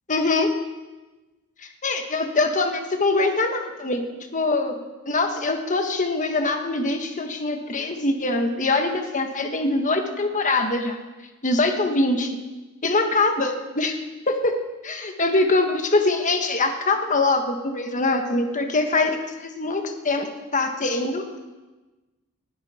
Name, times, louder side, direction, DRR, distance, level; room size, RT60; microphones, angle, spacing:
voice 1, 0.1-0.5 1.8-4.0 4.3-4.8 5.1-11.0 11.4-12.4 12.8-14.0 14.3-14.5 14.9-21.4, left 2 dB, 35° left, 5 dB, 1.4 m, -23 dB
19.5 x 12.5 x 4.4 m, 1.2 s
head